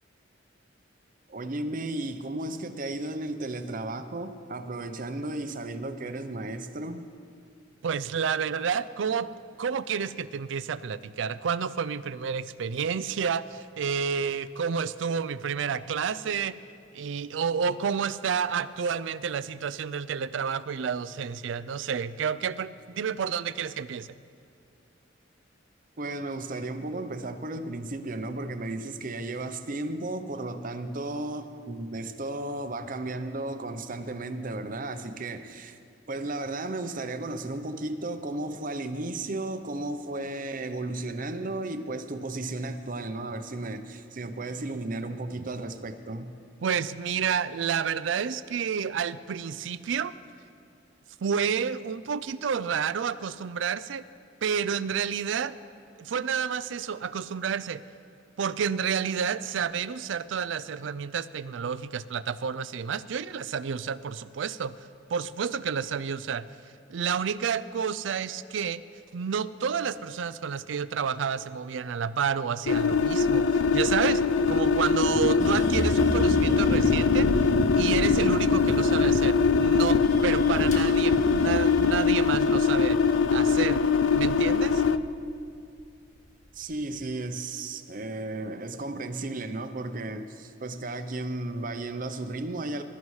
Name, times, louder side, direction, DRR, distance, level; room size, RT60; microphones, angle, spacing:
voice 1, 1.3-7.1 26.0-35.8 36.1-46.3 86.5-92.8, right 2 dB, 45° right, 9 dB, 0.7 m, -34 dB
voice 2, 7.8-9.3 9.6-16.6 16.9-24.1 46.6-50.1 51.2-54.0 54.4-55.6 56.0-57.8 58.4-64.8 65.1-66.5 66.9-68.8 69.1-74.2 74.5-77.3 77.8-83.0 83.3-83.8 84.1-84.8, right 7 dB, 75° right, 16 dB, 0.4 m, -30 dB
sound 1, 72.7-85.0, left 5 dB, 80° left, 0.5 m, -22 dB
sound 2, 75.4-85.6 86.0-86.8, equal, 40° left, 1.9 m, -36 dB
20.5 x 13.0 x 3.2 m, 2.4 s
head